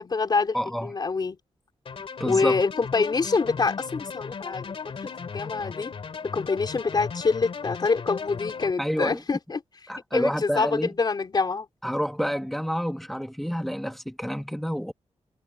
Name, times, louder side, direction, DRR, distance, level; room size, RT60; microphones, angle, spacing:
voice 1, 0.0-0.6 0.8-1.4 2.2-5.9 6.3-9.6 10.1-11.7, left 4 dB, 40° left, 3.5 m, -26 dB
voice 2, 0.5-0.9 2.2-2.6 8.8-9.2 9.9-10.9 11.8-14.9, equal, ahead, 1.5 m, -28 dB
sound 1, 1.9-8.7, left 5 dB, 55° left, 2.6 m, -36 dB
wide cardioid pair, 155°, 11 cm